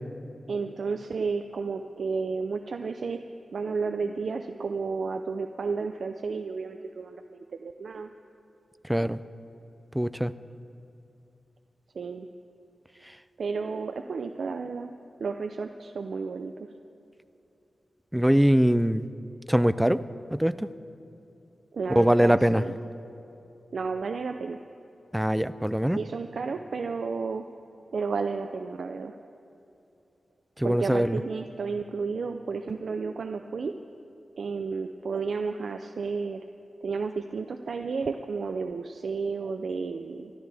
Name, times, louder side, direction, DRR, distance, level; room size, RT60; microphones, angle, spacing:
voice 1, 0.5-3.2 3.5-8.1 11.9-12.3 13.4-14.9 15.2-16.7 21.7-22.8 23.7-24.6 26.0-27.5 27.9-29.1 30.6-33.7 34.4-36.4 36.8-40.3, right 4 dB, 70° right, 6 dB, 0.5 m, -32 dB
voice 2, 8.8-9.2 9.9-10.3 18.1-19.1 19.5-20.0 20.3-20.7 21.9-22.6 25.1-26.0 30.6-31.2, equal, 5° right, 14 dB, 0.4 m, -22 dB
24.0 x 13.0 x 3.4 m, 2.7 s
wide cardioid pair, 100°, 0 cm